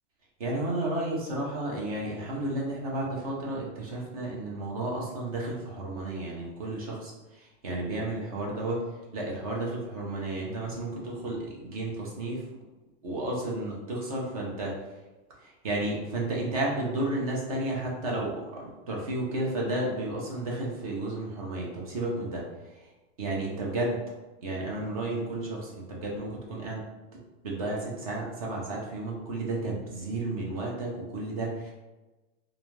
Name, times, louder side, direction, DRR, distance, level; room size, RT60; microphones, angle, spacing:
voice 1, 0.4-12.4 13.0-14.7 15.4-22.4 22.7-22.8 23.2-24.0 24.4-26.8 27.4-31.7, right 2 dB, 30° right, -3 dB, 0.4 m, -32 dB
2.5 x 2.3 x 3.0 m, 1.1 s
supercardioid pair, 175°, 40 cm